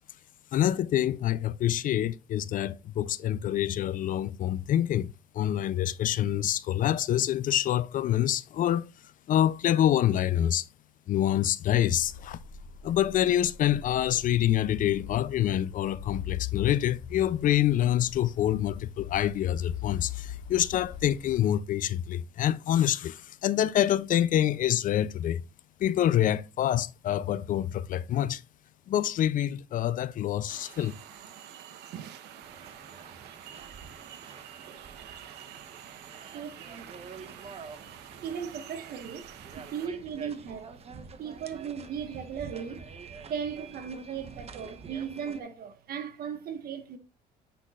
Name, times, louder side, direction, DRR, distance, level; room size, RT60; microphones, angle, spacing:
voice 1, 0.5-8.9 9.3-10.7 11.1-12.4 12.8-25.4 25.8-28.4 28.9-30.9, left 11 dB, 55° left, 0.4 m, -26 dB
sound 1, 11.6-21.4, left 10 dB, 75° left, 2.0 m, -41 dB
sound 2, 30.5-39.9, right 9 dB, 85° right, 0.9 m, -47 dB
sound 3, 32.4-45.4, right 5 dB, 35° right, 0.9 m, -47 dB
voice 2, 36.3-36.9 38.2-40.8 41.2-47.0, right 7 dB, 60° right, 1.3 m, -37 dB
8.4 x 5.8 x 2.4 m
cardioid pair, 110°, 17 cm